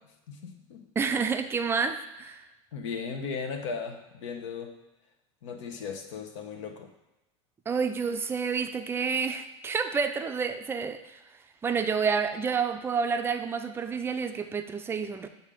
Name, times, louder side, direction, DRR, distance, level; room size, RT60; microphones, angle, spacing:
voice 1, 0.3-0.8 2.7-4.7 5.4-6.9, left 5 dB, 85° left, 6 dB, 0.9 m, -37 dB
voice 2, 1.0-2.4 7.7-11.2 11.6-15.3, right 5 dB, 15° right, 7 dB, 0.4 m, -29 dB
7.3 x 2.6 x 4.9 m, 0.99 s
supercardioid pair, 130°, 15 cm